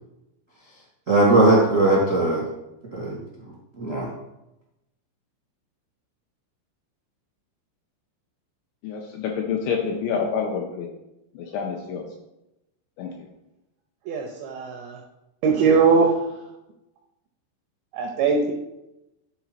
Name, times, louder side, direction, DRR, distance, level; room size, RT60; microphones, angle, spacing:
voice 1, 0.6-2.4 2.9-4.1, right 2 dB, 55° right, -6 dB, 0.8 m, -20 dB
voice 2, 8.8-10.9 11.3-12.0 13.0-13.3, left 6 dB, 85° left, 1 dB, 2.7 m, -28 dB
voice 3, 14.1-15.0 15.4-16.1 17.9-18.5, right 5 dB, 80° right, 2 dB, 2.5 m, -20 dB
10.5 x 4.2 x 4.5 m, 0.91 s
omnidirectional pair, 5.9 m